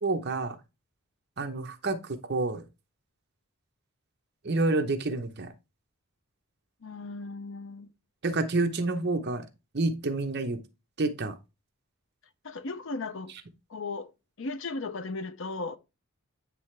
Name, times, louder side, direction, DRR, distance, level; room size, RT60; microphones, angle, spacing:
voice 1, 0.0-0.6 1.4-2.6 4.4-5.5 8.2-9.5 9.7-10.6 11.0-11.3, right 2 dB, 45° right, 0.8 m, -28 dB
voice 2, 6.8-7.9 12.4-13.3 13.7-14.1 14.4-15.8, left 3 dB, 60° left, 0.6 m, -36 dB
9.2 x 3.2 x 3.2 m
head